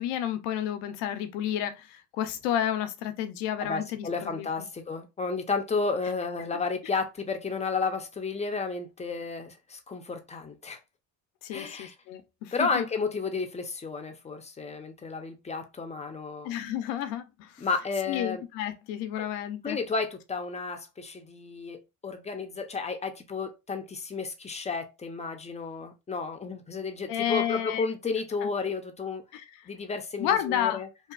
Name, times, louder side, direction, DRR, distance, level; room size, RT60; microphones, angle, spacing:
voice 1, 0.0-4.7 11.4-12.8 16.4-17.7 18.1-19.8 27.1-27.8 29.3-29.7 30.2-30.8, left 10 dB, 85° left, 0.6 m, -31 dB
voice 2, 3.6-10.8 11.5-11.9 12.5-16.5 17.6-18.4 19.1-19.3 19.6-29.2 29.7-30.9, left 4 dB, 15° left, 0.5 m, -32 dB
2.8 x 2.3 x 2.3 m
cardioid pair, 100°, 41 cm